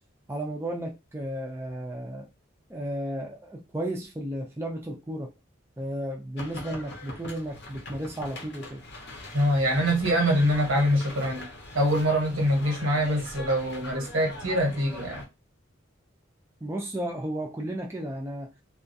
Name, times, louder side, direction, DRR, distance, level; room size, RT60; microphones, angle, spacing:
voice 1, 0.3-2.3 2.7-5.3 5.8-8.8 16.6-18.5, right 1 dB, 15° right, 0.4 m, -33 dB
sound 1, 6.4-15.3, left 1 dB, 55° left, 0.6 m, -42 dB
voice 2, 9.3-11.4 11.7-15.2, equal, 90° right, 1.1 m, -24 dB
2.3 x 2.3 x 2.6 m
head